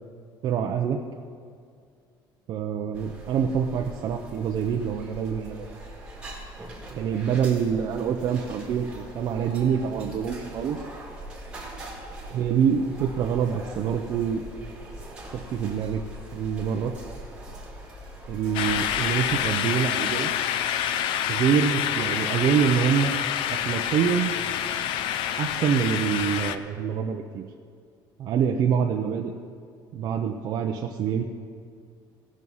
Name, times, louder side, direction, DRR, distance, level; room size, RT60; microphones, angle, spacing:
voice 1, 0.4-1.0 2.5-5.8 6.9-10.8 12.3-14.4 15.3-16.0 16.3-16.9 18.3-20.3 21.3-23.1 23.5-24.3 25.4-27.4 28.2-29.3 29.9-31.2, right 7 dB, 50° right, 2 dB, 0.6 m, -26 dB
sound 1, 2.9-19.5, right 1 dB, 10° right, 1.9 m, -41 dB
sound 2, 18.5-26.6, left 10 dB, 75° left, 0.5 m, -27 dB
17.0 x 6.2 x 5.5 m, 2.2 s
cardioid pair, 165°, 9 cm